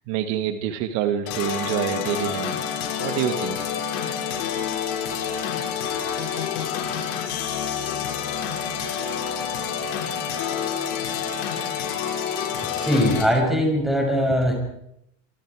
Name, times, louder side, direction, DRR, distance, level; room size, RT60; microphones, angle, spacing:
voice 1, 0.1-3.7, right 10 dB, 55° right, 8 dB, 1.9 m, -27 dB
sound 1, 1.3-13.2, left 8 dB, 75° left, 6.1 m, -28 dB
voice 2, 12.7-14.5, equal, ahead, 1 dB, 6.8 m, -21 dB
28.0 x 25.5 x 4.9 m, 0.77 s
supercardioid pair, 155°, 43 cm